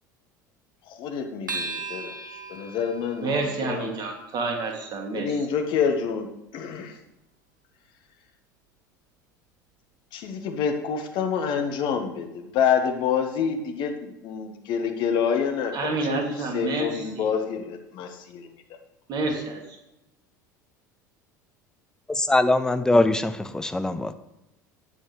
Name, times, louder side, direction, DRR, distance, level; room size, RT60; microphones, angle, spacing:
voice 1, 0.9-3.9 5.1-6.3 6.5-7.0 10.1-16.2 16.5-18.5, left 7 dB, 50° left, 5 dB, 1.6 m, -27 dB
sound 1, 1.5-6.2, right 3 dB, 85° right, 1.0 m, -39 dB
voice 2, 3.2-5.3 15.7-17.3 19.1-19.6, right 3 dB, 45° right, 2 dB, 2.8 m, -28 dB
voice 3, 22.1-24.1, left 2 dB, 5° left, 12 dB, 0.7 m, -22 dB
12.0 x 9.5 x 3.4 m, 0.91 s
figure-of-eight pair, 70°, 10 cm